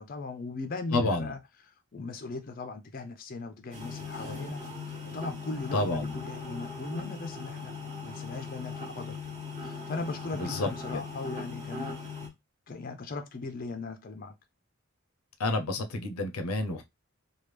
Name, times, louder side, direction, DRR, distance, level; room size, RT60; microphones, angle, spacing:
voice 1, 0.0-1.4 1.7-7.7 8.0-9.2 9.6-12.2 12.7-14.3, left 3 dB, 40° left, 0.4 m, -38 dB
voice 2, 0.9-1.3 5.7-6.1 10.3-11.0 15.4-16.8, left 2 dB, 90° left, 0.6 m, -29 dB
sound 1, 3.7-12.3, left 4 dB, 35° right, 1.0 m, -39 dB
3.2 x 2.3 x 3.2 m
head